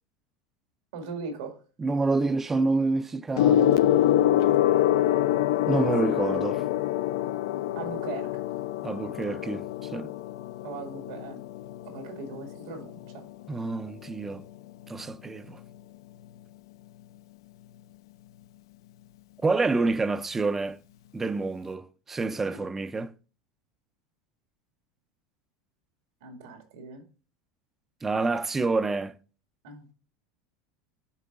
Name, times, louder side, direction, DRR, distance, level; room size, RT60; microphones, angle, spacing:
voice 1, 0.9-1.6 7.8-8.4 10.6-11.4 11.8-13.2 22.4-22.6 26.2-27.0 29.6-29.9, right 4 dB, 90° right, 1.8 m, -39 dB
voice 2, 1.8-3.8 5.7-6.6 8.8-10.1 13.5-14.5 14.9-15.6 19.4-20.8 21.1-23.1 28.0-29.2, right 3 dB, 15° right, 0.3 m, -28 dB
Gong, 3.4-13.1 14.1-14.3, left 12 dB, 85° left, 0.3 m, -25 dB
11.0 x 3.8 x 2.3 m
supercardioid pair, 145°, 2 cm